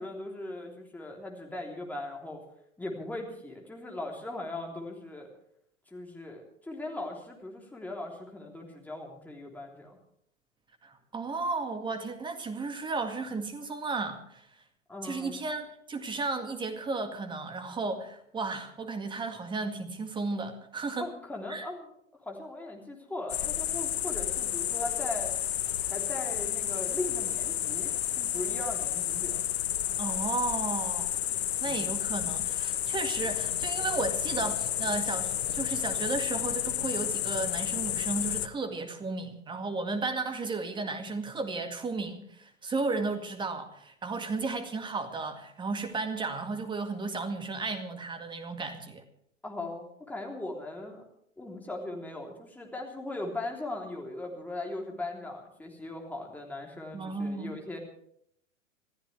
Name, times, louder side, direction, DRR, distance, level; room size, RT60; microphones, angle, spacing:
voice 1, 0.0-2.4 2.8-5.3 5.9-10.0 14.9-15.3 21.0-21.9 22.2-25.3 25.9-29.4 31.6-32.0 49.4-51.0 51.4-57.8, left 2 dB, 5° left, 0 dB, 3.3 m, -39 dB
voice 2, 10.8-14.4 15.0-21.1 21.5-21.7 30.0-31.2 31.6-49.0 56.9-57.5, right 3 dB, 10° right, 7 dB, 2.0 m, -34 dB
sound 1, 23.3-38.5, left 11 dB, 55° left, 0.9 m, -31 dB
26.5 x 14.0 x 3.4 m, 0.70 s
figure-of-eight pair, 100°, 38 cm